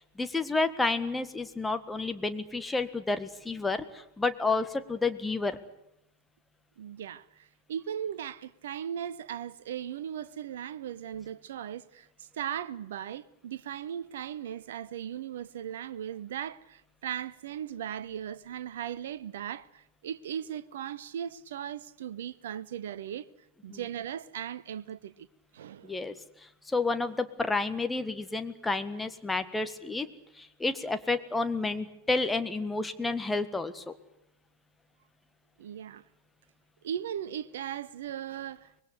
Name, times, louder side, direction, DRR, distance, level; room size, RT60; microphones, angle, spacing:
voice 1, 0.2-5.6 23.7-23.8 25.8-26.1 26.7-30.1 30.4-33.9, left 3 dB, 10° left, 1.6 m, -30 dB
voice 2, 6.8-23.3 23.6-25.3 25.5-26.0 35.6-36.0 36.8-38.8, right 9 dB, 60° right, 0.9 m, -38 dB
25.0 x 21.0 x 8.1 m
figure-of-eight pair, 90°, 0 cm